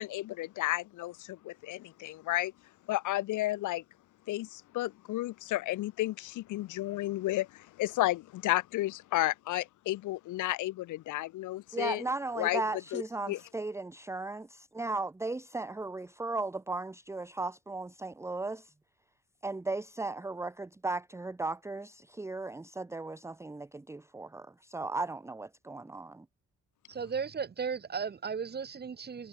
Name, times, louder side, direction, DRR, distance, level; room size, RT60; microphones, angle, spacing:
voice 1, 0.0-2.5 2.9-3.8 4.3-12.0 12.4-12.6 12.9-13.0 13.3-13.4, left 16 dB, 80° left, 0.8 m, -32 dB
voice 2, 11.7-18.7 19.4-26.3, right 3 dB, 10° right, 0.7 m, -36 dB
voice 3, 26.9-29.3, right 6 dB, 35° right, 1.2 m, -35 dB
cardioid pair, 90°, 30 cm